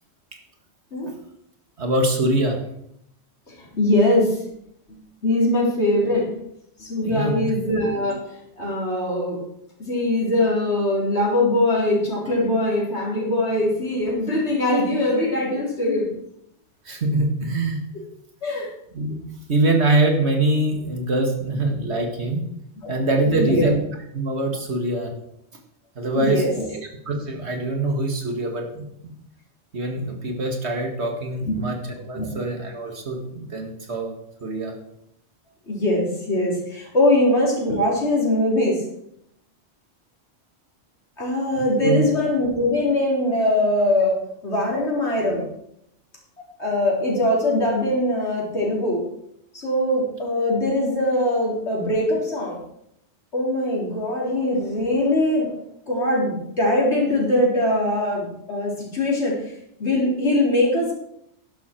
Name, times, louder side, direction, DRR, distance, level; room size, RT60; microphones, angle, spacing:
voice 1, 1.8-2.6 7.0-7.5 16.9-17.8 18.6-19.2 19.5-22.5 22.9-23.8 24.1-25.1 26.0-26.5 26.7-29.1 29.7-34.1 34.4-34.7 41.6-42.1, right 2 dB, 70° right, 3 dB, 2.3 m, -24 dB
voice 2, 3.6-4.4 4.9-6.3 6.8-8.2 8.6-9.4 9.8-16.1 18.4-18.7 22.8-22.9 23.4-23.7 26.1-26.7 31.5-31.6 32.0-32.3 35.7-38.8 41.2-45.5 46.6-49.0 49.5-52.6 53.3-55.5 55.9-59.3 59.8-60.9, left 1 dB, 75° left, -3 dB, 4.1 m, -22 dB
11.5 x 11.0 x 4.5 m, 0.75 s
omnidirectional pair, 1.2 m